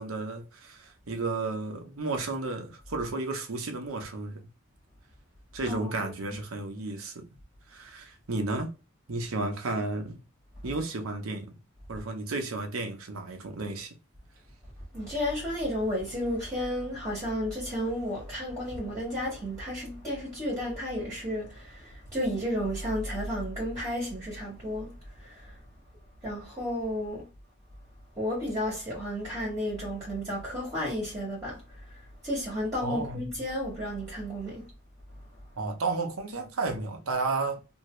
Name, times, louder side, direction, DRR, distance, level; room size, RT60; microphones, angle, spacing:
voice 1, 0.0-4.4 5.5-7.3 7.7-8.7 9.1-10.2 10.6-11.5 11.9-13.9 32.8-33.3 35.6-37.6, right 3 dB, 90° right, 0.8 m, -32 dB
voice 2, 14.9-24.9 25.2-25.5 26.2-27.2 28.2-31.6 32.2-34.7, equal, 20° right, 1.5 m, -32 dB
2.8 x 2.8 x 3.1 m
head